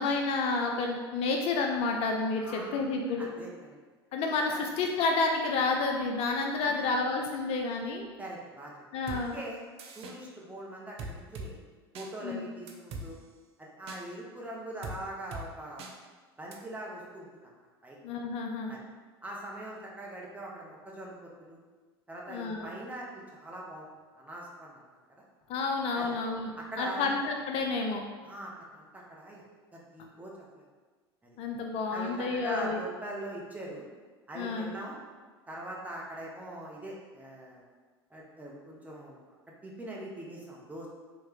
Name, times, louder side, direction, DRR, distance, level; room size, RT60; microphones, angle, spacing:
voice 1, 0.0-3.3 4.1-8.1 8.9-9.4 12.2-12.5 18.0-18.7 22.3-22.7 25.5-26.5 26.8-28.0 31.4-32.8 34.3-34.7, left 3 dB, 45° left, 2 dB, 0.4 m, -30 dB
voice 2, 2.4-2.8 3.2-3.8 4.5-4.6 6.6-6.7 8.2-8.7 9.1-9.6 9.9-11.6 11.9-13.2 13.6-15.9 16.4-17.3 17.8-18.0 18.7-18.8 19.2-21.6 22.1-23.9 24.1-24.8 25.9-26.1 26.6-27.1 28.2-29.4 29.7-30.6 31.2-31.4 31.9-33.8 34.3-35.0 35.5-37.6 38.1-39.2 39.6-40.9, right 1 dB, 10° right, -3 dB, 0.9 m, -42 dB
sound 1, 9.1-9.2 9.8-10.2 11.0-11.5 12.0-12.1 12.7-13.1 13.9-14.0 14.8-15.0 15.3-15.5 15.8-15.9 16.5-16.6, right 2 dB, 45° right, 0.6 m, -40 dB
3.1 x 2.9 x 3.5 m, 1.4 s
hypercardioid pair, 85°, 14 cm